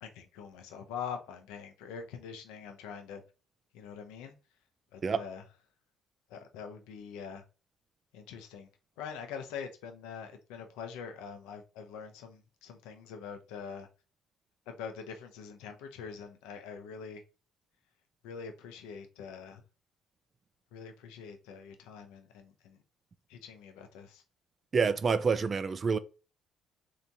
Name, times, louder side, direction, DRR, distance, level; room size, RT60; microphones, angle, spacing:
voice 1, 0.0-3.2 3.7-4.3 4.9-5.4 6.3-7.4 8.1-8.7 9.0-13.9 14.7-17.2 18.2-19.6 20.7-22.8 23.3-24.2, left 6 dB, 80° left, 0.7 m, -44 dB
voice 2, 24.7-26.0, right 5 dB, 40° right, 0.5 m, -27 dB
3.3 x 2.8 x 2.7 m
hypercardioid pair, 55°, 0 cm